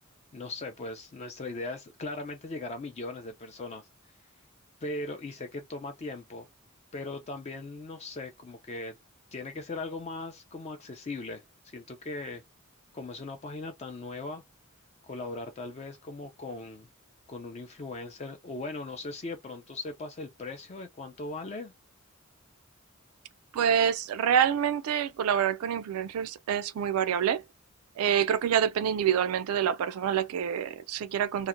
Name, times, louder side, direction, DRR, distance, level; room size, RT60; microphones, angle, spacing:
voice 1, 0.3-3.9 4.8-6.5 6.9-9.0 9.3-12.4 12.9-14.4 15.0-16.9 17.3-21.7, left 2 dB, 30° left, 0.4 m, -39 dB
voice 2, 23.5-27.4 28.0-31.5, right 8 dB, 80° right, 0.3 m, -27 dB
2.8 x 2.1 x 2.4 m
head